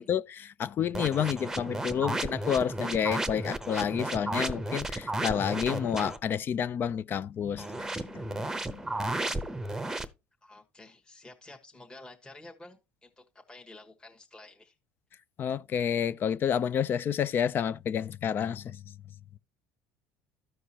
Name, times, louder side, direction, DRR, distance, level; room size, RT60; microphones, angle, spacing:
voice 1, 0.0-8.8 15.4-18.8, left 8 dB, 45° left, 0.4 m, -30 dB
sound 1, 0.9-6.2 7.6-10.1, right 2 dB, 10° right, 0.8 m, -33 dB
voice 2, 10.4-14.7, left 2 dB, 15° left, 1.3 m, -51 dB
14.0 x 4.7 x 2.8 m
supercardioid pair, 90°, 5 cm